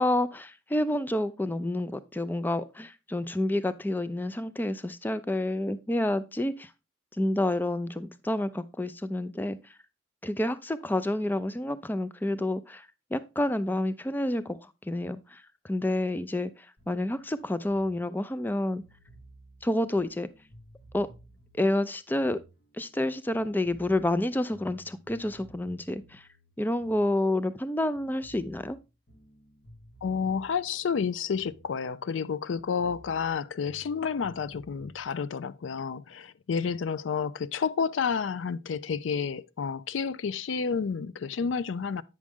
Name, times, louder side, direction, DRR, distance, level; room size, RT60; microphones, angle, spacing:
voice 1, 0.0-6.7 7.2-9.7 10.2-18.8 19.6-20.3 20.9-21.1 21.5-22.4 22.7-26.3 26.6-28.8, left 1 dB, 10° left, 0.3 m, -29 dB
sound 1, 16.8-23.1 23.4-27.7 27.9-32.2 32.5-35.1, right 1 dB, 70° left, 1.5 m, -55 dB
voice 2, 30.0-42.0, left 6 dB, 85° left, 0.4 m, -30 dB
8.5 x 6.2 x 3.5 m
head